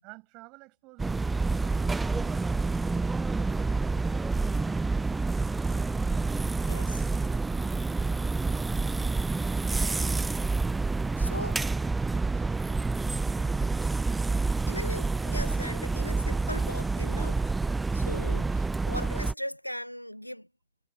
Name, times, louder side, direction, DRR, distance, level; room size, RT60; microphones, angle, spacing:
voice 1, 0.0-2.7, right 27 dB, 40° right, 7.7 m, -51 dB
sound 1, 1.0-19.3, right 3 dB, 10° right, 0.4 m, -28 dB
voice 2, 6.6-7.0 11.2-11.6 14.7-17.4 17.9-20.5, equal, 90° left, 2.1 m, -38 dB
figure-of-eight pair, 95°, 0 cm